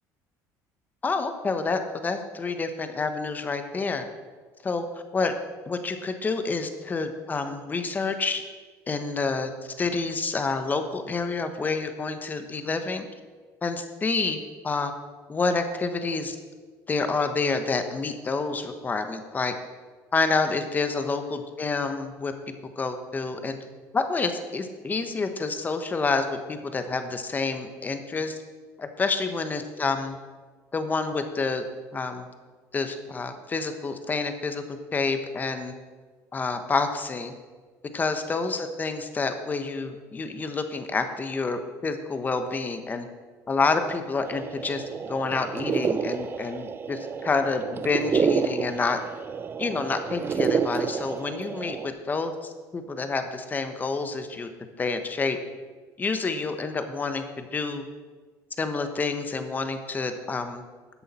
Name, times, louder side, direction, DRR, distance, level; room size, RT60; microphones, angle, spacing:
voice 1, 1.0-4.1 4.6-5.3 5.7-8.4 8.9-13.0 13.6-14.4 14.6-14.9 15.3-16.4 16.9-19.5 20.1-22.3 22.8-23.6 23.9-28.4 28.8-30.2 30.7-31.6 31.9-32.3 32.7-35.7 36.3-37.3 37.9-43.1 43.5-49.0 49.6-54.5 54.8-55.4 56.0-57.8 58.6-60.6, left 4 dB, 25° left, 8 dB, 1.0 m, -28 dB
sound 1, 44.3-51.9, right 6 dB, 30° right, 0.5 m, -29 dB
13.0 x 8.3 x 4.2 m, 1.4 s
cardioid pair, 125°, 7 cm